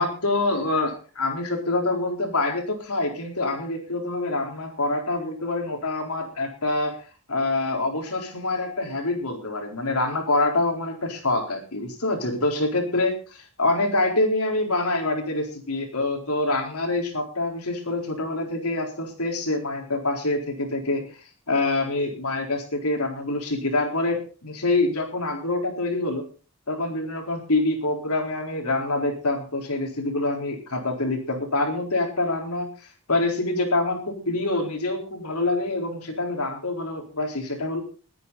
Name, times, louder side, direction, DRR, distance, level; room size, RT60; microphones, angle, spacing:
voice 1, 0.0-7.0 7.3-21.0 21.5-26.3 26.7-37.8, left 2 dB, 90° left, 3 dB, 4.2 m, -26 dB
20.5 x 9.4 x 4.1 m, 0.36 s
head